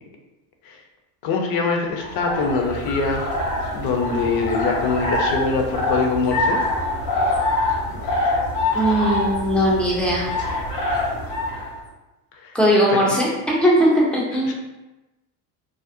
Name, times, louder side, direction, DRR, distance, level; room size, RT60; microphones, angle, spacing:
voice 1, 1.2-3.2 3.7-6.6 12.4-12.5 14.5-14.6, left 4 dB, 50° left, 2 dB, 0.6 m, -23 dB
sound 1, 1.9-11.7, left 2 dB, 70° left, 1.1 m, -25 dB
voice 2, 8.7-10.3 12.5-14.5, equal, 5° left, -4 dB, 0.3 m, -19 dB
2.5 x 2.0 x 2.5 m, 1.1 s
supercardioid pair, 85°, 50 cm